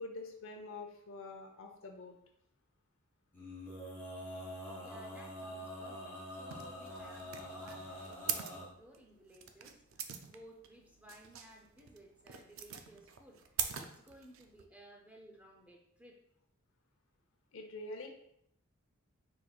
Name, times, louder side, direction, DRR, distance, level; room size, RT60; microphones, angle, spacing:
voice 1, 0.0-2.2 17.5-18.1, left 2 dB, 65° left, 3 dB, 0.8 m, -46 dB
Male singing, 3.3-8.7, equal, 10° left, 1.4 m, -45 dB
voice 2, 4.8-16.2, equal, 5° right, 0 dB, 0.5 m, -58 dB
sound 1, 6.5-14.7, right 8 dB, 65° right, 0.4 m, -42 dB
4.8 x 4.4 x 2.3 m, 0.72 s
head